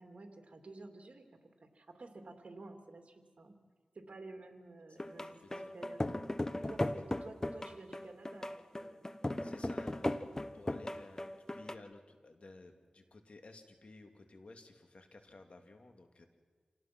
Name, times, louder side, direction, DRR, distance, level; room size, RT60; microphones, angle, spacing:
voice 1, 0.0-3.5 3.9-6.0 6.6-9.1, right 2 dB, 65° right, 5 dB, 2.8 m, -52 dB
sound 1, 5.0-11.7, left 1 dB, 25° left, 1.1 m, -37 dB
voice 2, 9.4-16.3, left 2 dB, 60° left, 5 dB, 2.5 m, -55 dB
27.5 x 18.0 x 6.1 m, 1.5 s
cardioid pair, 50°, 2 cm